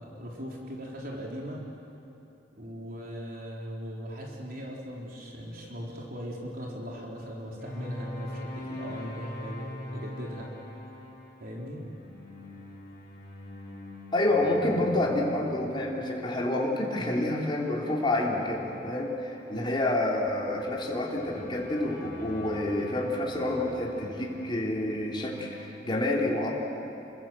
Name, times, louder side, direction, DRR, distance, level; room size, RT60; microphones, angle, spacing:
voice 1, 0.0-1.6 2.6-10.5 11.4-11.9 17.0-17.2 19.5-19.8, equal, 55° right, -2 dB, 4.3 m, -39 dB
sound 1, 7.6-25.6, left 1 dB, 55° left, 7.6 m, -44 dB
voice 2, 14.1-26.5, left 1 dB, 30° left, -3 dB, 3.7 m, -28 dB
28.5 x 24.0 x 7.7 m, 2.8 s
head